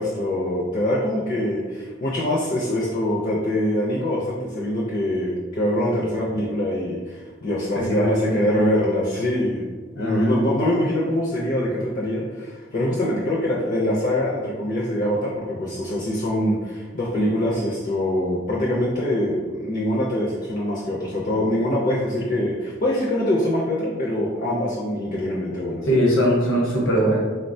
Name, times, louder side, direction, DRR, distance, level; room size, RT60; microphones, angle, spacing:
voice 1, 0.0-9.6 10.0-25.8, left 1 dB, 40° left, -4 dB, 0.4 m, -24 dB
voice 2, 7.8-8.4 10.0-10.4 25.9-27.2, equal, 75° left, -3 dB, 0.9 m, -21 dB
3.6 x 2.1 x 2.6 m, 1.4 s
head